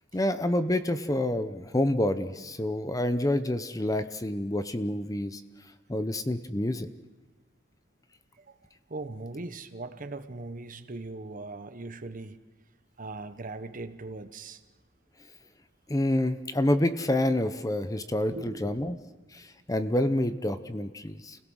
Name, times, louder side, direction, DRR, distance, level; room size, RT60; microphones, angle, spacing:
voice 1, 0.1-5.4 5.9-6.9 15.9-19.0 19.3-21.4, left 1 dB, 15° left, 10 dB, 0.8 m, -28 dB
voice 2, 8.9-12.4 13.0-14.6 18.3-18.8, right 2 dB, 45° right, 10 dB, 1.0 m, -39 dB
29.0 x 17.0 x 6.3 m, 1.2 s
head